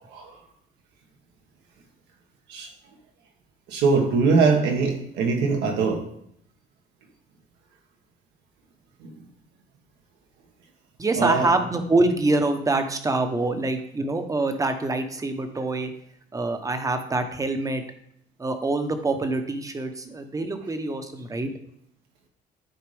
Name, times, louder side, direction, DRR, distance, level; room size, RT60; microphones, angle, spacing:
voice 1, 3.7-6.0 9.0-9.1 11.2-11.5, right 4 dB, 85° right, 2 dB, 1.5 m, -22 dB
voice 2, 11.0-15.9 16.3-17.8 18.4-21.5, right 2 dB, 20° right, 7 dB, 0.9 m, -25 dB
10.5 x 4.3 x 3.4 m, 0.70 s
cardioid pair, 110°, 17 cm